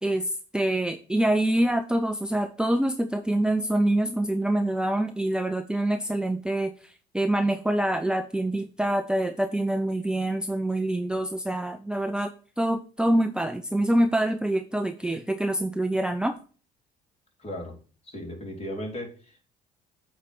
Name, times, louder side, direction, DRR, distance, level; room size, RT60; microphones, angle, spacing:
voice 1, 0.0-16.3, right 1 dB, 5° right, 7 dB, 0.6 m, -26 dB
voice 2, 17.4-17.8 18.0-19.4, equal, 35° left, 0 dB, 3.4 m, -36 dB
8.6 x 3.4 x 5.8 m, 0.38 s
hypercardioid pair, 65°, 18 cm